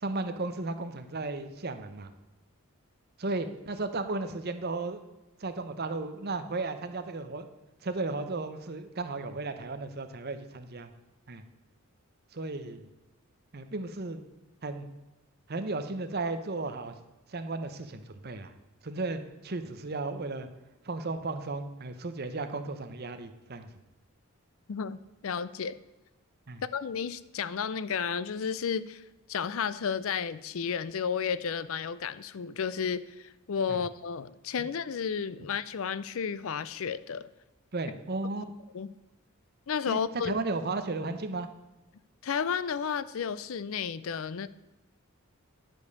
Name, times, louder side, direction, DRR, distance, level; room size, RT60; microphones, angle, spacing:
voice 1, 0.0-2.1 3.2-5.0 5.4-7.5 7.8-10.9 11.3-11.4 12.3-12.8 13.5-14.2 14.6-14.9 15.5-16.9 17.3-18.5 18.8-20.5 20.8-23.7 26.5-26.6 33.7-33.8 37.7-38.5 39.9-41.5, right 3 dB, 45° right, 9 dB, 0.8 m, -34 dB
voice 2, 25.2-25.8 26.7-29.0 29.3-37.3 38.7-38.9 39.7-40.3 42.2-44.5, left 6 dB, 65° left, 16 dB, 0.4 m, -32 dB
10.5 x 5.3 x 6.5 m, 1.0 s
head